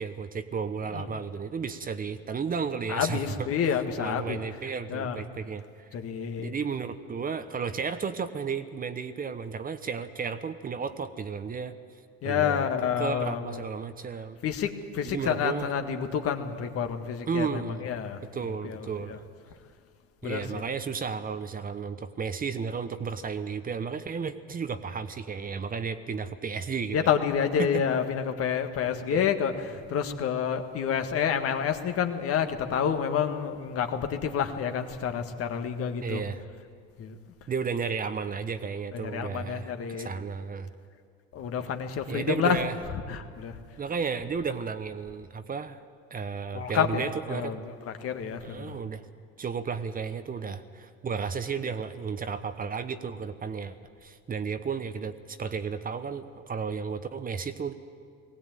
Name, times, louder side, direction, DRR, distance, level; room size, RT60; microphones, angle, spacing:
voice 1, 0.0-3.5 4.0-5.6 6.4-11.7 12.2-12.7 13.0-14.4 15.0-15.7 17.3-17.9 18.3-19.2 20.2-27.1 27.6-27.8 29.1-29.3 36.0-36.4 37.5-40.7 42.1-42.8 43.8-45.8 46.1-47.6 48.4-49.0 49.4-53.8 54.0-57.7, right 6 dB, 30° right, 11 dB, 1.0 m, -33 dB
voice 2, 2.9-4.4 4.9-5.2 5.9-6.5 12.2-13.6 14.4-18.2 18.6-19.2 20.2-20.6 26.9-36.2 37.0-37.1 38.9-40.1 41.3-42.6 43.1-43.6 46.5-48.8, left 8 dB, 50° left, 6 dB, 1.7 m, -29 dB
19.5 x 16.5 x 9.1 m, 2.1 s
supercardioid pair, 90°, 29 cm